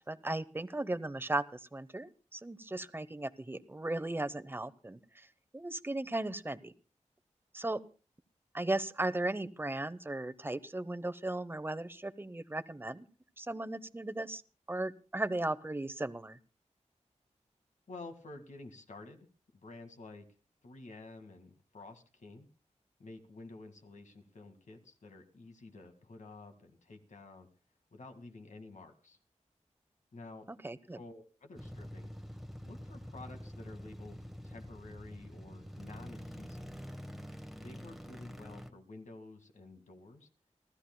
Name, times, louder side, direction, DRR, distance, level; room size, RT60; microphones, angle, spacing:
voice 1, 0.1-5.3 5.5-6.7 7.5-7.8 8.5-13.1 13.4-14.4 14.7-16.4 30.5-31.0, right 2 dB, 20° right, 14 dB, 0.7 m, -36 dB
voice 2, 17.9-19.3 19.5-20.2 20.6-22.5 23.0-27.5 27.9-29.2 30.1-30.5 31.0-32.1 32.6-36.7 37.5-40.3, left 2 dB, 80° left, 6 dB, 1.9 m, -51 dB
sound 1, 31.6-38.7, equal, ahead, 1.1 m, -46 dB
30.0 x 13.0 x 2.2 m, 0.36 s
wide cardioid pair, 75°, 12 cm